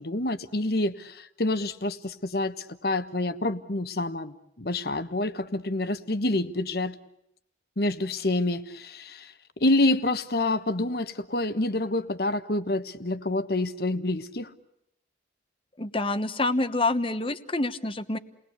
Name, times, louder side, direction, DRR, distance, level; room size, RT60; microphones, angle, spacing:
voice 1, 0.0-6.9 7.8-14.5, left 2 dB, 55° left, 11 dB, 1.3 m, -27 dB
voice 2, 15.8-18.2, left 2 dB, 30° left, 11 dB, 1.1 m, -27 dB
30.0 x 20.5 x 8.2 m, 0.81 s
head